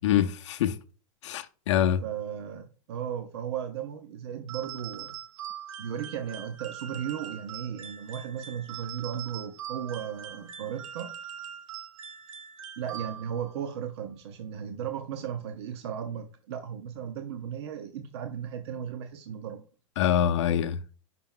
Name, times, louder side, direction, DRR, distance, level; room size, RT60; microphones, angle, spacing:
voice 1, 0.0-0.8 1.2-2.0 20.0-20.8, left 10 dB, 65° left, 0.6 m, -25 dB
voice 2, 2.0-5.1 5.8-11.1 12.8-19.6, right 8 dB, 55° right, 0.7 m, -36 dB
sound 1, 4.5-13.5, right 9 dB, 80° right, 0.8 m, -42 dB
5.9 x 5.2 x 3.7 m
supercardioid pair, 170°, 16 cm